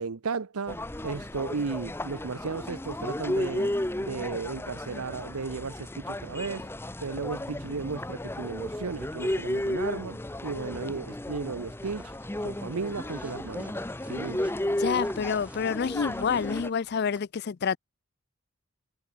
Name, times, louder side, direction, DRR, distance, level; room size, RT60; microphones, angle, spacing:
voice 1, 0.0-3.7 4.0-6.7 7.0-12.1 12.4-13.7 14.1-14.4, right 4 dB, 80° right, 0.8 m, -35 dB
sound 1, 0.7-16.7, left 1 dB, 10° left, 0.6 m, -33 dB
sound 2, 11.8-17.2, right 1 dB, 5° right, 2.0 m, -51 dB
voice 2, 14.8-17.8, left 6 dB, 45° left, 0.4 m, -28 dB
head